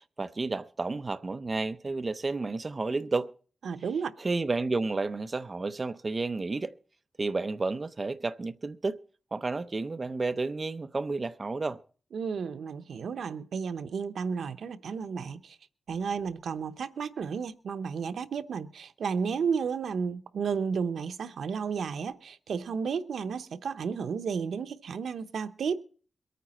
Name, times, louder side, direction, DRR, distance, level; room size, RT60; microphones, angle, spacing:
voice 1, 0.0-3.3 4.2-6.7 7.2-9.0 9.3-11.8, right 3 dB, 30° right, 0.6 m, -31 dB
voice 2, 3.6-4.1 12.1-15.6 15.9-25.8, right 6 dB, 90° right, 0.8 m, -32 dB
23.0 x 9.3 x 4.2 m
wide cardioid pair, 150°, 0 cm